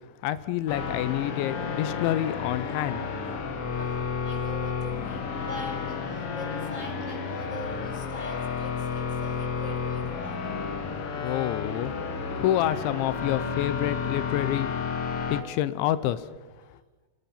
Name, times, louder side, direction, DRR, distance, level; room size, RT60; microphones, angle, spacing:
voice 1, 0.2-3.1 11.2-11.9 12.4-14.7 15.3-16.3, left 13 dB, 85° left, 14 dB, 3.2 m, -28 dB
sound 1, 0.7-15.4, left 5 dB, 60° left, 1.5 m, -31 dB
voice 2, 3.3-10.6 16.6-16.7, left 1 dB, 10° left, 2 dB, 4.3 m, -43 dB
27.5 x 20.5 x 5.8 m, 1.2 s
omnidirectional pair, 5.2 m